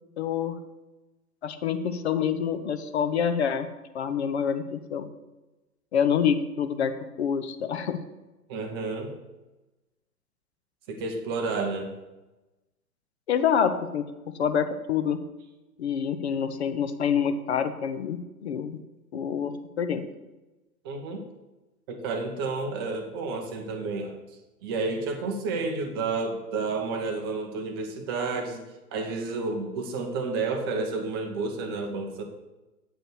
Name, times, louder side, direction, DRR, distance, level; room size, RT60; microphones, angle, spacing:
voice 1, 0.2-0.5 1.4-3.7 3.9-5.1 5.9-6.9 7.2-8.0 13.3-14.0 14.4-15.2 15.8-18.8 19.1-20.1, left 7 dB, 45° left, 10 dB, 0.8 m, -26 dB
voice 2, 8.5-9.1 10.9-11.9 20.8-21.2 21.9-24.2 24.6-28.6 28.9-32.2, right 3 dB, 15° right, 4 dB, 0.6 m, -30 dB
8.0 x 5.1 x 6.4 m, 1.1 s
figure-of-eight pair, 120°, 47 cm